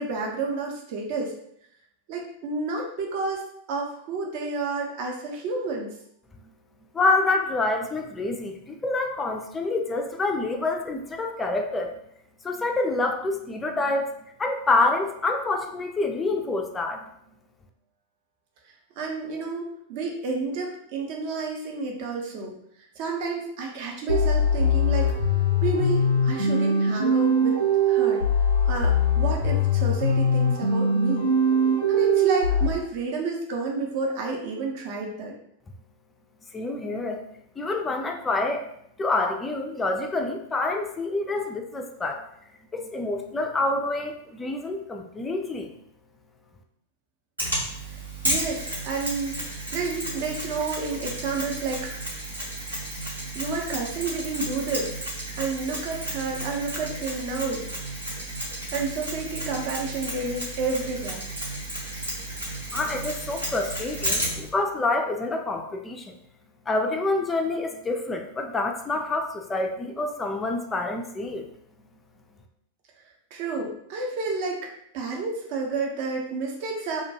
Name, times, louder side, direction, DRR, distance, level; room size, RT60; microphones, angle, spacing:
voice 1, 0.0-1.3 2.1-3.4 3.7-5.9 19.0-22.5 23.0-25.1 25.6-27.6 27.9-28.2 28.6-31.3 31.9-35.3 47.9-49.4 49.7-51.9 52.9-53.0 53.3-55.0 55.3-57.6 58.7-61.2 73.3-77.0, right 3 dB, 45° right, 0 dB, 0.5 m, -30 dB
voice 2, 6.9-12.0 12.4-14.1 14.4-17.0 36.5-37.2 37.6-38.7 39.0-42.2 42.7-45.7 62.7-66.1 66.7-71.4, left 2 dB, 15° left, 3 dB, 0.3 m, -27 dB
sound 1, 24.1-32.7, left 1 dB, 85° left, 0.5 m, -22 dB
Mechanisms, 47.4-64.5, right 1 dB, 85° right, 0.9 m, -33 dB
2.3 x 2.2 x 2.7 m, 0.72 s
figure-of-eight pair, 90°, 0 cm